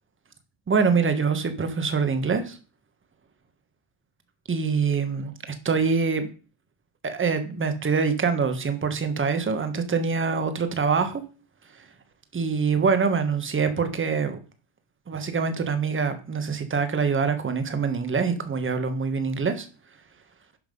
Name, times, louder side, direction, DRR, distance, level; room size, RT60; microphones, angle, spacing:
voice 1, 0.7-2.6 4.5-5.3 5.6-6.3 7.0-11.2 12.3-14.4 15.1-19.7, right 5 dB, 25° right, 9 dB, 1.5 m, -24 dB
11.0 x 5.8 x 5.5 m, 0.36 s
cardioid pair, 150°, 47 cm